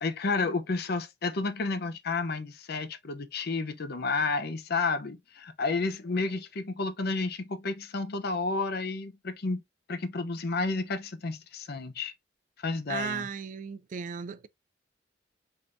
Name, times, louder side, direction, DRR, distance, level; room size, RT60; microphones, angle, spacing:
voice 1, 0.0-9.6 9.9-12.1 12.6-13.3, left 3 dB, 55° left, 0.7 m, -31 dB
voice 2, 12.9-14.5, right 6 dB, 45° right, 0.3 m, -35 dB
3.6 x 3.4 x 2.5 m
head